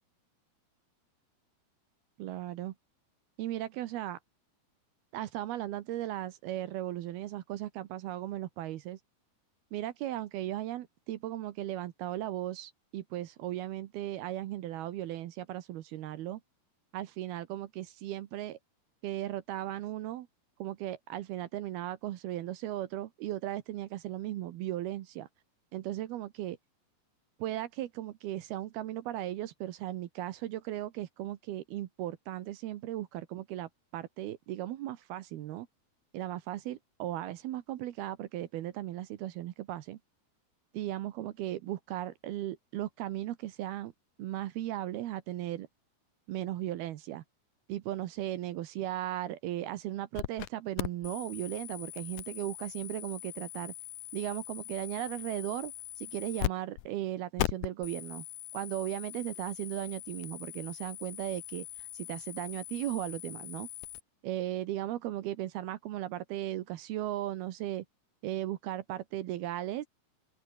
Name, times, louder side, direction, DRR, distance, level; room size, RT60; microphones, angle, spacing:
voice 1, 2.2-2.7 3.4-4.2 5.1-9.0 9.7-16.4 16.9-18.6 19.0-20.3 20.6-25.3 25.7-26.6 27.4-35.7 36.1-40.0 40.7-43.9 44.2-45.7 46.3-47.2 47.7-53.7 54.1-58.2 58.5-61.7 61.9-63.7 64.2-67.8 68.2-69.9, right 13 dB, 75° right, 3.0 m, -37 dB
sound 1, 50.2-50.5 50.8-56.5 56.8-56.9 57.4-64.0, left 16 dB, 80° left, 1.8 m, -40 dB
open air
omnidirectional pair, 4.6 m